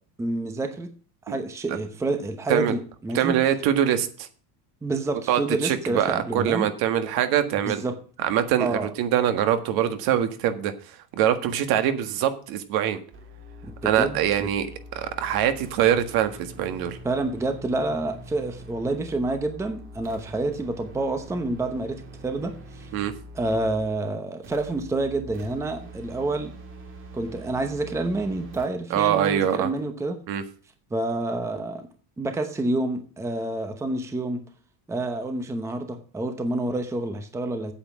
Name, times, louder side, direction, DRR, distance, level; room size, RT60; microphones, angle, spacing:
voice 1, 0.2-0.9 1.3-3.3 4.8-6.7 7.7-7.9 8.6-8.9 13.6-14.5 17.0-22.9 23.3-26.5 27.1-30.2 30.9-31.9 32.2-34.4 34.9-37.7, right 2 dB, 5° right, 7 dB, 0.8 m, -28 dB
voice 2, 3.1-4.3 5.3-7.8 8.2-10.7 11.1-13.0 13.8-14.7 15.0-17.0 22.9-23.1 28.9-29.7 30.3-30.4, right 10 dB, 55° right, 9 dB, 1.7 m, -23 dB
sound 1, 13.1-24.0 24.4-28.7, right 1 dB, 25° right, 1.8 m, -43 dB
8.8 x 8.0 x 6.1 m, 0.42 s
cardioid pair, 170°, 44 cm